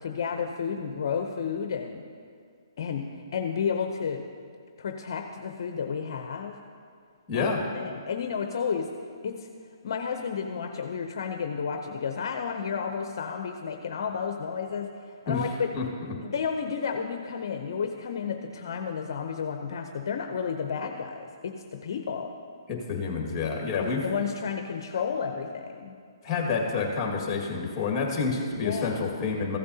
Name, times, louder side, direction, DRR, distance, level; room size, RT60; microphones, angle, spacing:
voice 1, 0.0-2.0 2.8-4.2 4.8-6.6 7.3-7.5 7.7-8.9 9.2-9.5 9.8-15.7 16.2-22.3 23.8-25.9 28.6-29.0, left 6 dB, 60° left, 5 dB, 0.6 m, -32 dB
voice 2, 7.3-7.6 15.3-15.4 15.7-16.1 22.7-24.0 26.2-29.6, left 4 dB, 20° left, 0 dB, 1.9 m, -28 dB
15.0 x 8.6 x 2.8 m, 2.2 s
hypercardioid pair, 145°, 2 cm